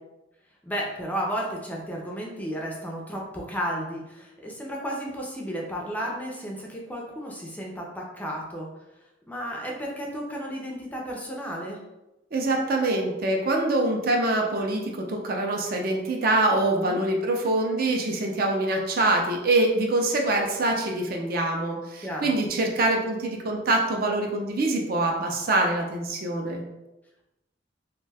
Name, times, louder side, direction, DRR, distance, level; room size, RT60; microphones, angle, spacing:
voice 1, 0.6-8.7 9.3-11.8 16.7-17.0 22.0-22.3, equal, 10° left, -2 dB, 0.4 m, -33 dB
voice 2, 12.3-26.6, right 2 dB, 50° right, 1 dB, 0.5 m, -24 dB
2.6 x 2.2 x 3.3 m, 0.97 s
head